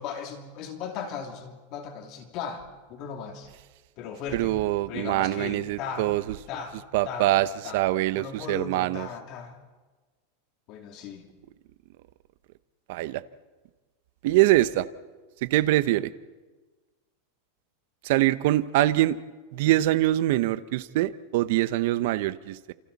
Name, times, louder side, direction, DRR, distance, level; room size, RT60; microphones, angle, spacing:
voice 1, 0.0-3.5 4.0-4.5 4.9-6.1 6.5-6.8 7.0-7.3 7.6-7.8 8.1-9.6 10.7-11.3, left 7 dB, 45° left, 4 dB, 2.9 m, -37 dB
voice 2, 4.3-6.4 6.9-7.5 7.7-9.1 12.9-13.2 14.2-14.9 15.4-16.1 18.0-19.2 19.5-22.7, right 15 dB, 60° right, 15 dB, 0.9 m, -24 dB
30.0 x 28.0 x 4.2 m, 1.3 s
supercardioid pair, 145°, 0 cm